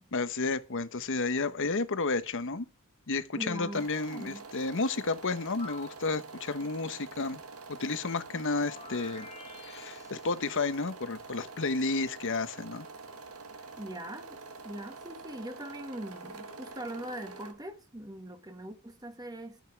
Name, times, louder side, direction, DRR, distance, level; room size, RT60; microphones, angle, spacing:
voice 1, 0.1-2.7 3.1-7.4 7.7-9.3 9.7-12.9, left 3 dB, 60° left, 1.1 m, -31 dB
voice 2, 3.3-4.4 13.8-19.6, right 1 dB, 15° right, 1.5 m, -42 dB
sound 1, 3.7-17.5, right 4 dB, 80° right, 2.0 m, -46 dB
sound 2, 5.6-6.1 8.5-10.7, left 4 dB, 30° left, 1.9 m, -49 dB
13.0 x 9.4 x 4.6 m
head